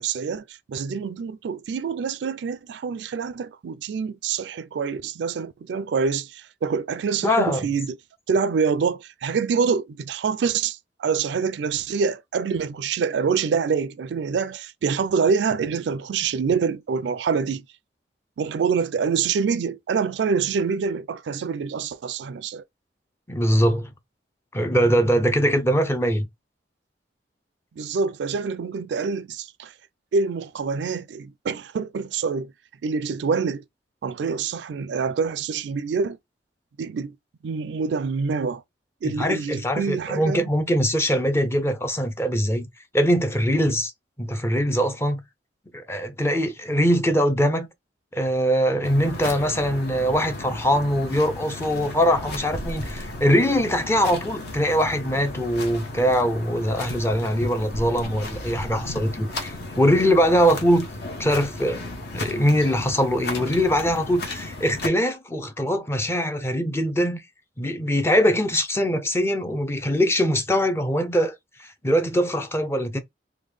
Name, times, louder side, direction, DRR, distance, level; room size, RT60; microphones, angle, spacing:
voice 1, 0.0-8.0 8.3-17.7 18.4-22.6 27.8-29.7 30.1-32.5 32.8-33.6 34.0-36.2 36.8-37.2 37.4-38.6 39.0-40.5, right 5 dB, 70° right, 0.3 m, -26 dB
voice 2, 7.2-7.7 23.3-23.9 24.5-26.3 39.0-42.7 42.9-43.9 44.2-45.2 45.7-47.7 48.1-60.9 61.2-67.2 67.6-73.0, equal, 15° left, 0.5 m, -22 dB
sound 1, 48.8-64.9, left 2 dB, 60° left, 1.0 m, -35 dB
3.6 x 2.2 x 3.2 m
head